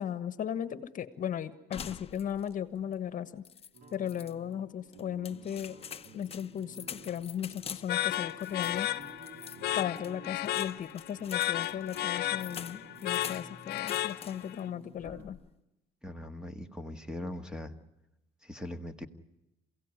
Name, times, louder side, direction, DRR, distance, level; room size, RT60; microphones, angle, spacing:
voice 1, 0.0-3.4 3.9-5.8 6.1-8.9 9.7-15.4, left 9 dB, 50° left, 14 dB, 1.3 m, -36 dB
sound 1, 1.7-2.6 2.9-3.0 3.4-4.3 4.9-14.6 15.0-15.5, left 7 dB, 35° left, 0.9 m, -46 dB
sound 2, 3.7-15.3, right 3 dB, 65° right, 3.2 m, -54 dB
sound 3, 7.9-14.6, left 14 dB, 75° left, 1.0 m, -34 dB
voice 2, 16.0-17.8 18.4-19.1, left 1 dB, 5° right, 9 dB, 1.8 m, -40 dB
28.5 x 16.5 x 9.8 m, 0.91 s
cardioid pair, 110°, 17 cm